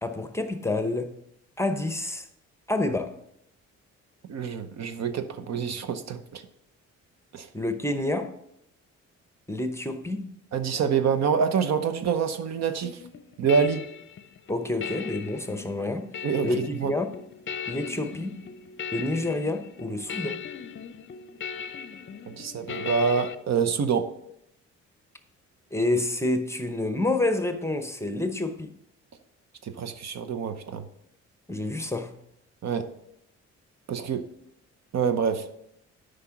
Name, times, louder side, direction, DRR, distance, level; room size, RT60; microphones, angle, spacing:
voice 1, 0.0-1.1 1.6-2.3 2.7-3.2 7.5-8.4 9.5-10.3 14.5-16.1 16.4-17.1 17.7-18.4 18.9-20.4 25.7-28.7 31.5-32.1, left 2 dB, 10° left, 0.8 m, -28 dB
voice 2, 4.3-6.4 7.3-7.5 10.5-13.0 13.4-13.8 16.2-16.9 22.3-24.0 29.6-30.8 32.6-32.8 33.9-34.2 34.9-35.5, right 6 dB, 60° right, 0.8 m, -26 dB
sound 1, 12.8-23.4, left 7 dB, 40° left, 0.6 m, -38 dB
8.2 x 5.2 x 5.8 m
cardioid pair, 90°, 30 cm